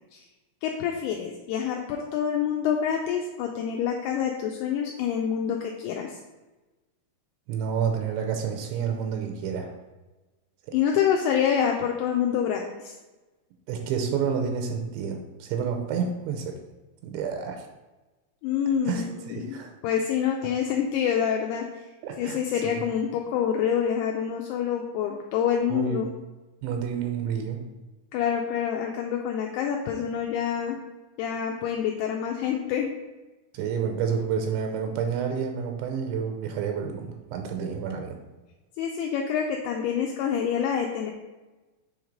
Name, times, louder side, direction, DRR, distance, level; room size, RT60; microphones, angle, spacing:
voice 1, 0.6-6.2 10.7-12.9 18.4-21.7 22.2-26.1 28.1-30.8 31.2-32.9 38.8-41.1, left 8 dB, 85° left, 1 dB, 2.3 m, -27 dB
voice 2, 7.5-9.7 13.7-16.6 17.0-17.7 18.9-19.7 22.0-22.4 22.6-22.8 25.7-26.1 26.6-27.6 33.5-38.2, right 7 dB, 85° right, 4 dB, 2.9 m, -29 dB
7.0 x 3.2 x 5.0 m, 1.1 s
omnidirectional pair, 5.1 m